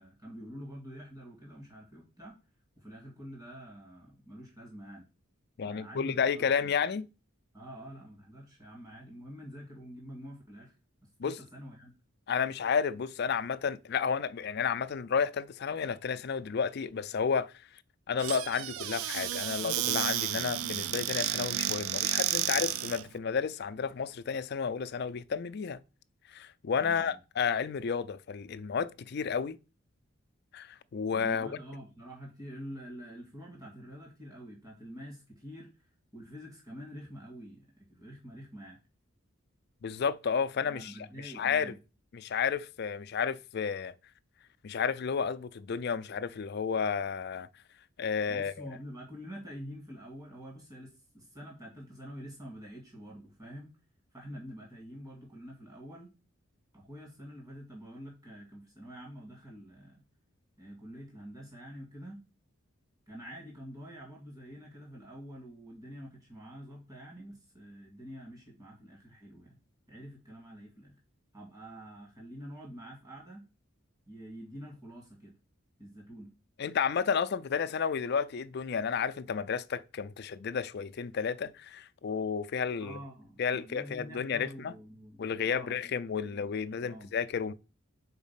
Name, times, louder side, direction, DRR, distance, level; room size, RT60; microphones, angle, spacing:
voice 1, 0.0-2.4 2.8-5.1 5.6-6.7 7.5-11.9 26.8-27.2 31.1-38.8 40.7-41.7 48.3-53.7 54.1-56.1 56.7-60.0 60.6-62.2 63.1-69.6 69.9-70.9 71.3-73.5 74.1-75.3 75.8-76.3 82.8-86.5 86.7-87.1, equal, 15° right, 2.0 m, -47 dB
voice 2, 5.6-7.1 11.2-11.4 12.3-17.7 18.1-25.8 26.3-29.6 30.5-31.6 39.8-40.9 41.2-41.7 42.1-43.9 44.6-47.5 48.0-48.8 76.6-83.0 83.4-84.7 85.2-87.5, left 6 dB, 50° left, 0.4 m, -32 dB
Squeak / Cupboard open or close, 18.2-23.1, right 13 dB, 90° right, 0.3 m, -32 dB
5.1 x 4.0 x 5.6 m
head